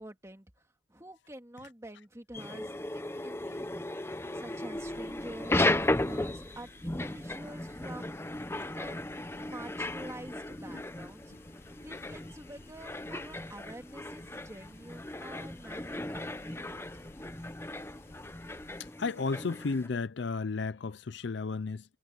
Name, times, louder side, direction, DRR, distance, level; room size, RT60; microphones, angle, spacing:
voice 1, 0.0-9.1 9.5-11.3 11.8-16.9, right 1 dB, 15° right, 2.4 m, -48 dB
sound 1, 2.3-19.9, left 1 dB, 15° left, 0.7 m, -36 dB
sound 2, 4.7-18.9, left 2 dB, 45° left, 1.1 m, -57 dB
voice 2, 19.0-21.8, left 4 dB, 65° left, 0.5 m, -33 dB
head